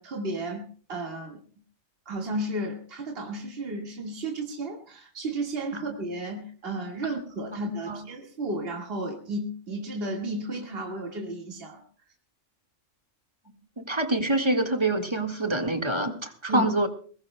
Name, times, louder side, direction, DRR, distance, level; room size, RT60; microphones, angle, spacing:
voice 1, 0.0-1.4 2.1-11.8 16.5-16.7, right 1 dB, 50° right, 1 dB, 2.1 m, -33 dB
voice 2, 13.8-16.9, right 2 dB, 20° right, 4 dB, 1.6 m, -26 dB
22.5 x 19.5 x 2.2 m, 0.42 s
omnidirectional pair, 1.3 m